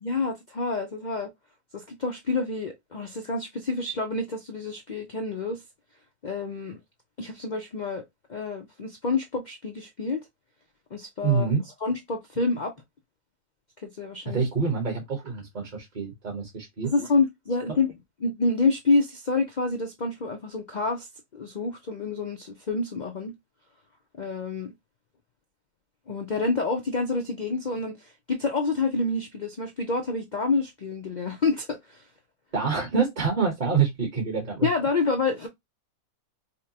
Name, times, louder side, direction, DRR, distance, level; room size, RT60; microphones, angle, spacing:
voice 1, 0.0-1.3 1.7-5.6 6.2-6.8 7.2-8.0 8.3-10.2 10.9-11.5 11.8-12.7 13.8-14.4 16.8-17.9 18.2-21.1 21.3-23.3 24.2-24.7 26.1-32.0 34.6-35.5, left 3 dB, 75° left, 0.4 m, -28 dB
voice 2, 11.2-11.6 14.2-16.9 17.7-17.8 32.5-34.7, right 5 dB, 35° right, 0.9 m, -26 dB
5.3 x 2.1 x 2.7 m
omnidirectional pair, 1.6 m